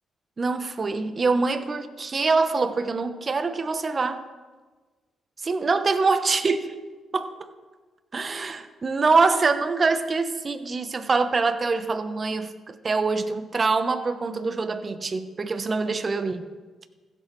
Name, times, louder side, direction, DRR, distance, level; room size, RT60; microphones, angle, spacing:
voice 1, 0.4-4.3 5.4-6.7 7.1-7.5 8.1-16.4, right 4 dB, 40° right, 11 dB, 0.8 m, -24 dB
15.5 x 7.6 x 3.2 m, 1.3 s
supercardioid pair, 55°, 0 cm